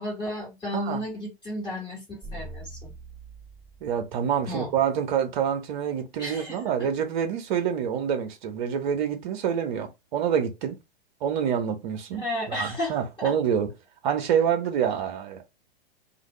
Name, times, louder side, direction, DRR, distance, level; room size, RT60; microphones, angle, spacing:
voice 1, 0.0-2.9 4.5-4.7 6.2-6.9 12.1-13.3, left 1 dB, 15° left, 1.6 m, -33 dB
sound 1, 2.2-4.7, right 2 dB, 5° right, 1.1 m, -43 dB
voice 2, 3.8-10.8 11.2-13.7 14.0-15.4, right 8 dB, 50° right, 0.9 m, -27 dB
2.6 x 2.5 x 3.1 m
hypercardioid pair, 110°, 31 cm